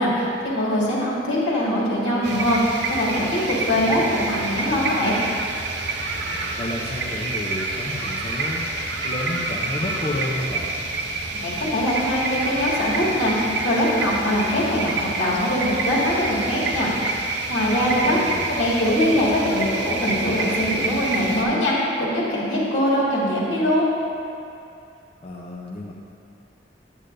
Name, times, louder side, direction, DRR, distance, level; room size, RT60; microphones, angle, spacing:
voice 1, 0.0-5.2 11.3-17.0 17.5-18.2 18.5-23.8, equal, 90° left, -6 dB, 2.0 m, -22 dB
sound 1, 2.2-21.4, right 2 dB, 75° right, 0.8 m, -28 dB
voice 2, 6.5-8.6 9.0-10.7 17.8-18.5 25.2-25.9, left 1 dB, 35° left, -3 dB, 0.5 m, -31 dB
9.0 x 8.4 x 2.6 m, 2.5 s
head